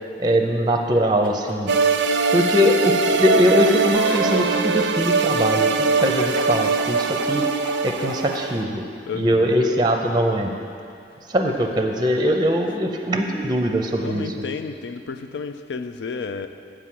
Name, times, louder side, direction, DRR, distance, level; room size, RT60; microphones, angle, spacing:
voice 1, 0.2-1.7 2.3-7.5 7.8-8.8 9.1-10.5 11.3-14.3, equal, 25° right, 3 dB, 0.6 m, -21 dB
sound 1, 1.2-1.5 3.5-4.6 6.0-8.4, left 1 dB, 10° left, 0.9 m, -34 dB
sound 2, 1.7-8.6, right 4 dB, 80° right, 0.5 m, -21 dB
voice 2, 9.1-9.5 13.9-16.5, left 5 dB, 85° left, 9 dB, 0.5 m, -32 dB
8.3 x 5.0 x 7.6 m, 2.4 s
head